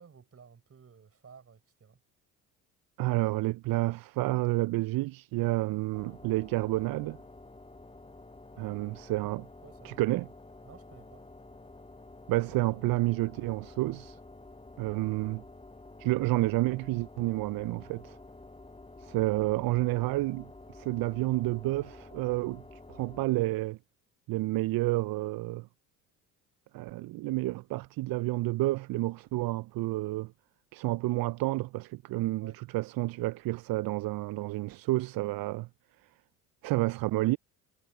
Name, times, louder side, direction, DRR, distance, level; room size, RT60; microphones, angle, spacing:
voice 1, 0.0-2.0 8.5-8.8 9.6-10.0 10.6-11.2 32.4-32.6, right 6 dB, 35° right, 5.9 m, -54 dB
voice 2, 3.0-7.2 8.6-9.4 9.8-10.3 12.3-14.2 14.8-15.4 16.0-18.2 19.0-23.8 24.3-25.7 26.7-30.3 30.7-35.7 36.6-37.4, right 19 dB, 55° right, 0.9 m, -30 dB
sound 1, 5.9-23.3, left 2 dB, 15° left, 1.9 m, -50 dB
hypercardioid pair, 60°, 43 cm